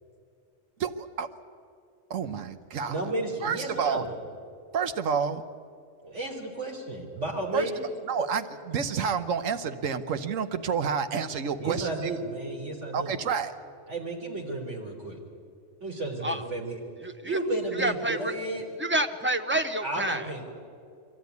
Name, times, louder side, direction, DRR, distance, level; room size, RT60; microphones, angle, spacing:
voice 1, 0.8-1.3 2.1-3.0 3.4-4.0 4.7-5.4 7.5-7.7 8.1-12.1 12.9-13.5, right 6 dB, 80° right, 9 dB, 1.3 m, -29 dB
voice 2, 2.8-4.1 6.0-7.8 11.6-13.2 13.9-15.2 15.8-16.8 17.2-18.6 19.8-20.4, right 2 dB, 65° right, 0 dB, 3.9 m, -32 dB
voice 3, 17.0-17.4 17.7-18.4 18.8-20.3, right 1 dB, 10° right, 7 dB, 0.6 m, -28 dB
23.0 x 14.5 x 9.5 m, 2.3 s
omnidirectional pair, 1.3 m